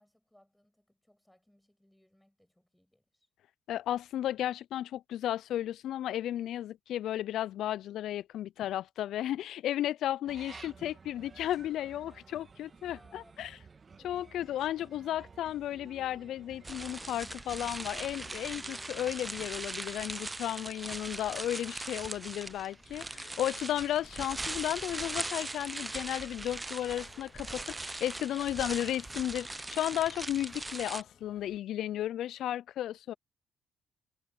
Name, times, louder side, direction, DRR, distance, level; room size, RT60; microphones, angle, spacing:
voice 1, 0.0-3.3 12.9-14.4, left 1 dB, 5° left, 7.4 m, -66 dB
voice 2, 3.7-13.5 14.0-33.1, left 12 dB, 80° left, 0.3 m, -34 dB
sound 1, 10.2-19.5, right 5 dB, 35° right, 1.9 m, -54 dB
sound 2, 16.6-31.0, right 2 dB, 15° right, 0.7 m, -40 dB
sound 3, 17.8-31.6, left 7 dB, 55° left, 1.9 m, -62 dB
cardioid pair, 90°, 0 cm